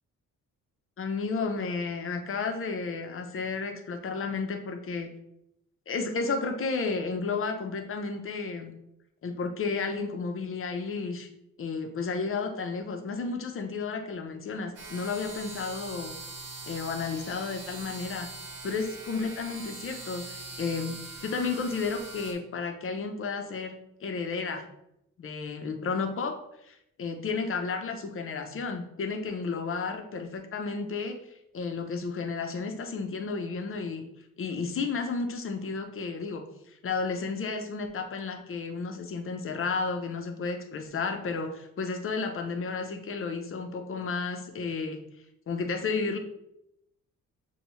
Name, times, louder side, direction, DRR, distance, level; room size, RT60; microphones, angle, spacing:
voice 1, 1.0-5.1 5.9-8.7 9.2-11.3 11.6-16.1 16.6-18.3 18.6-24.6 25.2-26.4 26.6-31.2 31.5-34.0 34.4-36.4 36.8-45.0 45.5-46.2, left 4 dB, 45° left, 5 dB, 0.7 m, -32 dB
sound 1, 14.8-22.3, right 3 dB, 55° right, 1.1 m, -42 dB
6.7 x 2.3 x 3.0 m, 0.80 s
cardioid pair, 90°, 30 cm